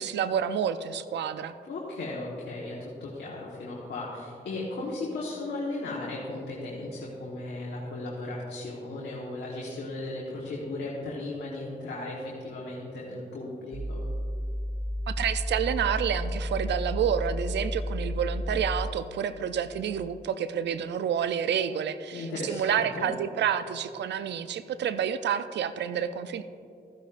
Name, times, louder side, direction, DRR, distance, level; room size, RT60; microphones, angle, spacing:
voice 1, 0.0-1.5 15.1-26.4, right 8 dB, 90° right, 12 dB, 0.4 m, -29 dB
voice 2, 1.6-14.0 22.1-23.1, left 2 dB, 90° left, -5 dB, 1.3 m, -36 dB
sound 1, 13.7-18.8, equal, 40° right, 1.8 m, -32 dB
13.5 x 10.5 x 2.5 m, 2.5 s
cardioid pair, 45°, 18 cm